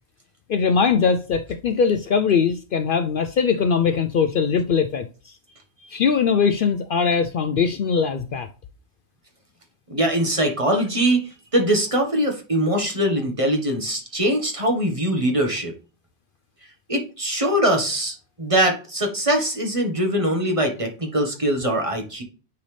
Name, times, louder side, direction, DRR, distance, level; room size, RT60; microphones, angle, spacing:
voice 1, 0.5-5.4 5.9-8.5, left 6 dB, 60° left, 0.7 m, -21 dB
voice 2, 9.9-15.7 16.9-22.2, right 1 dB, 30° right, 1.5 m, -22 dB
9.6 x 4.0 x 3.3 m
omnidirectional pair, 1.1 m